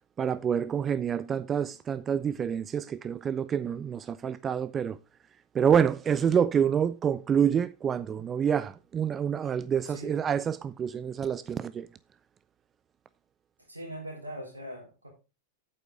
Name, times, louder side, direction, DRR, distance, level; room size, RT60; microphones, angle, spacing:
voice 1, 0.2-5.0 5.5-11.9, right 8 dB, 25° right, 0.4 m, -27 dB
voice 2, 9.9-10.2 13.7-15.1, equal, 80° right, 3.6 m, -41 dB
8.6 x 8.1 x 3.4 m
figure-of-eight pair, 90°, 0 cm